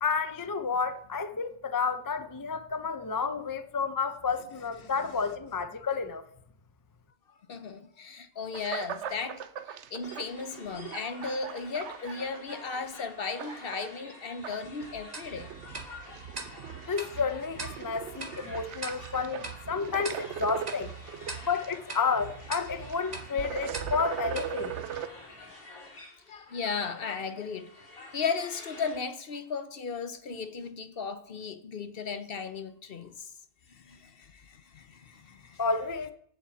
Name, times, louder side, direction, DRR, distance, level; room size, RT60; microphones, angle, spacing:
voice 1, 0.0-6.2 16.9-20.9 21.4-24.7 35.6-36.1, left 5 dB, 30° left, 0.4 m, -31 dB
voice 2, 7.5-9.4 9.7-15.5 16.0-16.4 18.9-19.0 21.3-21.5 26.3-27.7 28.1-33.3 33.7-35.6, left 5 dB, 50° left, 0.8 m, -36 dB
sound 1, 8.5-13.0 13.3-14.0 14.3-25.1, right 9 dB, 60° right, 0.9 m, -40 dB
sound 2, 10.0-29.0, left 2 dB, 85° left, 3.3 m, -49 dB
Tick-tock, 15.1-25.6, right 2 dB, 30° right, 1.3 m, -44 dB
7.4 x 7.1 x 8.2 m
omnidirectional pair, 1.4 m